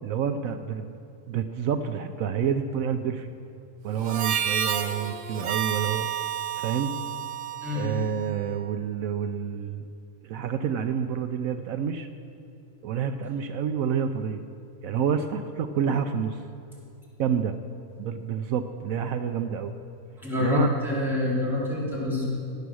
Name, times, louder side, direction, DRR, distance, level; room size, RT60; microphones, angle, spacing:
voice 1, 0.0-0.9 1.3-3.3 3.8-6.1 6.6-7.0 7.7-9.8 10.2-12.1 12.8-14.4 14.8-16.4 17.2-17.6 18.0-19.7 20.4-20.8, right 7 dB, 70° right, 8 dB, 1.0 m, -28 dB
Harmonica, 4.0-8.6, right 9 dB, 50° right, 0.6 m, -31 dB
voice 2, 7.6-7.9 20.2-22.3, left 2 dB, ahead, -8 dB, 3.8 m, -26 dB
18.5 x 8.3 x 6.3 m, 2.6 s
omnidirectional pair, 1.6 m